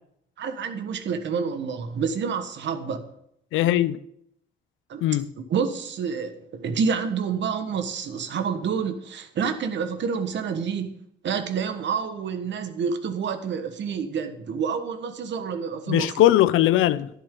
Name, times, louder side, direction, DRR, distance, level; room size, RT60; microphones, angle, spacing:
voice 1, 0.4-3.0 4.9-5.0 5.5-11.0 11.2-16.1, right 6 dB, 65° right, 1.4 m, -28 dB
voice 2, 3.5-4.0 5.0-5.3 15.9-17.1, left 13 dB, 85° left, 0.6 m, -20 dB
11.5 x 10.5 x 3.8 m
cardioid pair, 90°, 20 cm